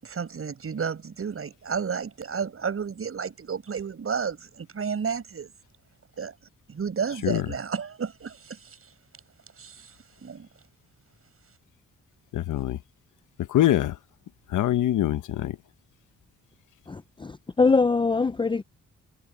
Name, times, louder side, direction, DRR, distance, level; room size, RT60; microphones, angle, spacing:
voice 1, 0.0-5.5 6.2-6.3 6.7-8.8 9.6-9.9 10.2-10.5, right 6 dB, 45° right, 7.7 m, -32 dB
voice 2, 12.3-12.8 13.4-14.0 14.5-15.6, left 13 dB, 90° left, 0.9 m, -24 dB
voice 3, 16.9-18.6, left 4 dB, 15° left, 0.5 m, -23 dB
cardioid pair, 110°, 30 cm